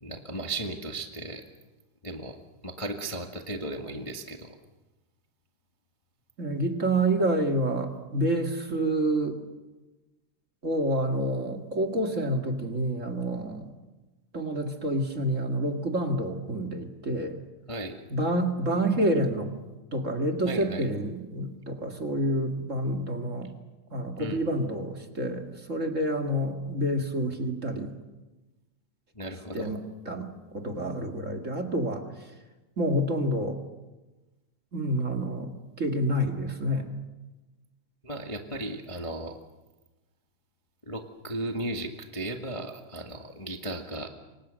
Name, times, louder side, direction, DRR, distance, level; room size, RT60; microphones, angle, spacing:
voice 1, 0.0-1.4 2.0-2.4 2.6-4.6 17.7-18.0 20.4-20.9 24.2-24.5 29.1-29.7 38.0-39.4 40.8-44.1, right 1 dB, 25° left, 3 dB, 0.6 m, -35 dB
voice 2, 6.4-9.4 10.6-13.7 14.3-17.4 18.1-19.5 19.9-23.5 23.9-27.9 29.5-32.3 32.8-33.6 34.7-36.9, right 1 dB, 30° right, 4 dB, 1.7 m, -28 dB
28.5 x 25.0 x 6.5 m, 1.1 s
omnidirectional pair, 3.9 m